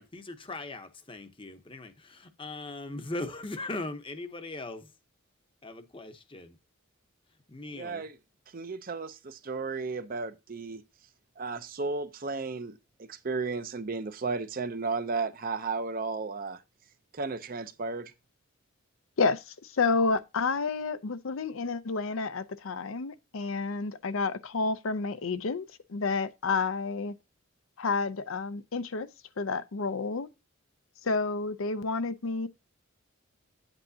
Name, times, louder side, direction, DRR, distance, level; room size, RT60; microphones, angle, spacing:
voice 1, 0.0-4.9 5.6-6.6 7.5-8.1, left 2 dB, 25° left, 0.8 m, -39 dB
voice 2, 7.7-8.1 8.5-10.8 11.4-12.8 13.1-16.6 17.1-18.1, right 4 dB, 40° right, 0.6 m, -34 dB
voice 3, 19.2-27.1 27.8-29.1 29.4-30.3 31.0-32.5, left 4 dB, 70° left, 0.6 m, -30 dB
9.0 x 8.1 x 2.7 m
head